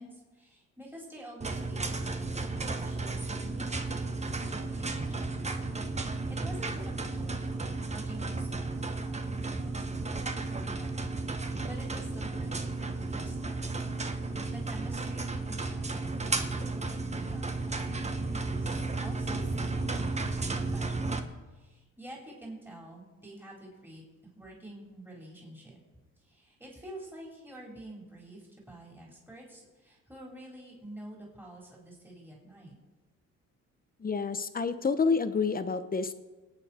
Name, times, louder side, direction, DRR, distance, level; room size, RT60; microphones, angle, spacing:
voice 1, 0.0-5.6 6.1-13.7 14.5-24.0 24.3-25.8 26.2-32.7, right 1 dB, 5° right, -3 dB, 4.4 m, -48 dB
sound 1, 1.4-21.2, right 3 dB, 20° right, 1.2 m, -33 dB
voice 2, 34.0-36.1, left 5 dB, 30° left, 11 dB, 1.0 m, -28 dB
25.0 x 9.0 x 4.4 m, 1.2 s
cardioid pair, 90°, 30 cm